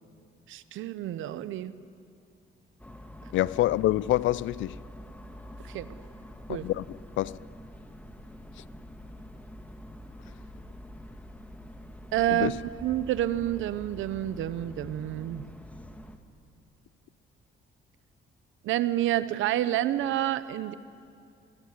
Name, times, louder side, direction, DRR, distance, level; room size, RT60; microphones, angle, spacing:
voice 1, 0.5-1.7 5.6-5.9 6.5-6.7 12.1-12.5 12.8-15.5 18.6-20.7, right 13 dB, 85° right, 0.8 m, -28 dB
sound 1, 2.8-16.2, left 1 dB, 5° left, 1.6 m, -46 dB
voice 2, 3.3-4.7 6.6-6.8 7.2-7.4 12.3-12.5, left 15 dB, 75° left, 0.5 m, -26 dB
23.0 x 14.5 x 9.6 m
cardioid pair, 90°, 20 cm